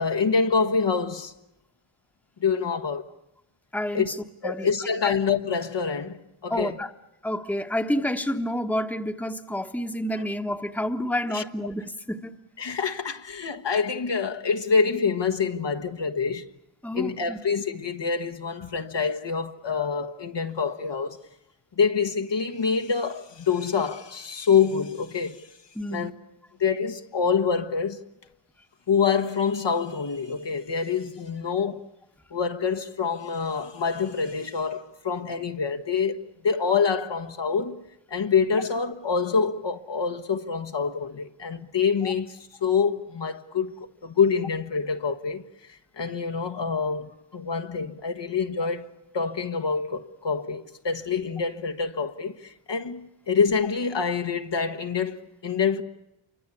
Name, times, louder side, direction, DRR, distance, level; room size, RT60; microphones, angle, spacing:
voice 1, 0.0-1.3 2.4-3.0 3.9-4.1 4.4-6.8 10.2-10.3 11.3-11.5 12.6-16.5 16.9-21.2 21.8-25.5 25.9-26.1 26.6-28.0 28.9-31.9 32.3-37.8 38.1-45.4 46.0-48.8 49.1-55.8, left 5 dB, 55° left, 1.4 m, -26 dB
voice 2, 3.7-4.2 4.4-4.7 5.0-5.1 6.5-6.9 7.2-12.3 16.8-17.4 25.7-26.1 42.0-42.1, left 1 dB, 5° left, 1.3 m, -29 dB
28.0 x 24.5 x 8.4 m
wide cardioid pair, 80°, 50 cm